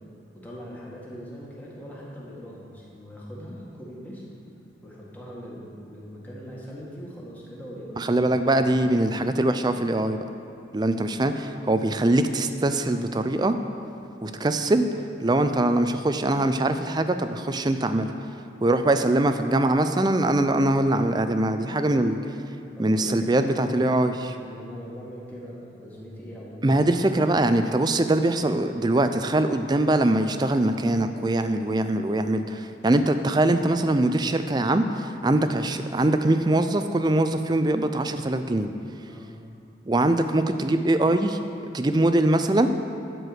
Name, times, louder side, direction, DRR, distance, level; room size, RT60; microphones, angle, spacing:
voice 1, 0.3-4.2 4.8-9.3 14.2-14.5 22.8-24.0 24.3-26.7 39.1-39.3, equal, 10° left, -5 dB, 1.8 m, -41 dB
voice 2, 8.0-10.2 10.7-13.6 14.2-14.9 15.2-18.1 18.6-22.3 22.8-24.1 26.6-38.7 39.9-41.4 41.7-42.7, right 1 dB, 25° right, 9 dB, 0.4 m, -22 dB
13.0 x 4.7 x 7.9 m, 2.6 s
head